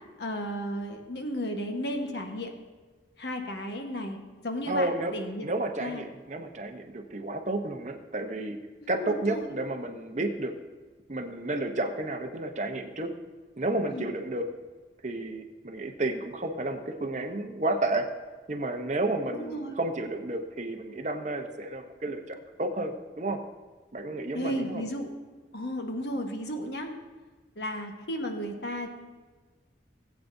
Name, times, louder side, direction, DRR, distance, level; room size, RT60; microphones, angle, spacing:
voice 1, 0.2-2.5 3.2-5.4 5.8-6.0 8.8-9.5 13.9-14.1 19.3-19.8 24.3-25.1 25.5-26.9 27.5-28.9, equal, 75° left, 4 dB, 1.3 m, -34 dB
voice 2, 4.7-5.1 5.4-8.6 8.9-10.5 11.1-13.1 13.6-14.5 15.0-18.1 18.5-23.4 23.9-24.8, right 2 dB, 40° right, 6 dB, 0.8 m, -31 dB
18.5 x 8.2 x 2.7 m, 1.4 s
head